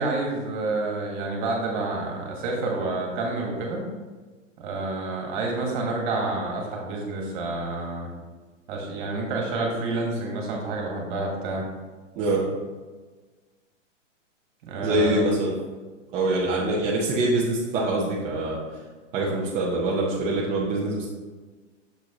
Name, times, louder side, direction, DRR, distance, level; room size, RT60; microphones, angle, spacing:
voice 1, 0.0-3.8 4.6-8.1 8.7-11.6 14.6-15.4, right 2 dB, 40° right, 0 dB, 1.7 m, -28 dB
voice 2, 14.8-15.5 16.1-18.6 19.1-21.1, right 2 dB, 15° right, -5 dB, 0.6 m, -24 dB
6.5 x 6.0 x 3.0 m, 1.3 s
hypercardioid pair, 150°, 38 cm